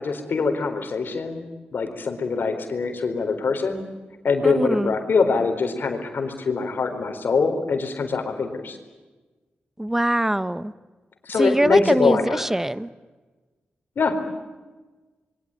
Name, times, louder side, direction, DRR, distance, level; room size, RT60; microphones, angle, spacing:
voice 1, 0.0-1.5 1.7-3.8 4.2-8.8 11.2-12.5 14.0-14.2, left 4 dB, 65° left, 6 dB, 4.2 m, -23 dB
voice 2, 4.4-4.9 9.8-10.7 11.4-12.9, right 1 dB, 10° right, 15 dB, 1.0 m, -23 dB
27.0 x 22.5 x 9.1 m, 1.3 s
cardioid pair, 75°, 4 cm